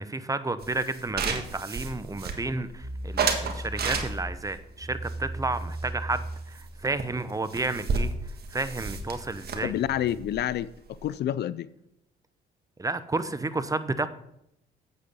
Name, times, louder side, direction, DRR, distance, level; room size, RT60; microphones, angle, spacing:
voice 1, 0.0-8.1 8.5-9.7 12.8-14.1, right 3 dB, 15° right, 13 dB, 0.8 m, -31 dB
sound 1, 0.6-2.7 3.2-4.5 5.0-6.3 6.6-6.7 7.0-7.1 7.3-11.2, right 5 dB, 55° right, 1.6 m, -32 dB
sound 2, 2.8-10.3, right 1 dB, 25° left, 3.4 m, -39 dB
voice 2, 9.6-11.7, left 11 dB, 60° left, 18 dB, 0.4 m, -29 dB
8.3 x 8.0 x 5.4 m, 0.78 s
supercardioid pair, 75°, 19 cm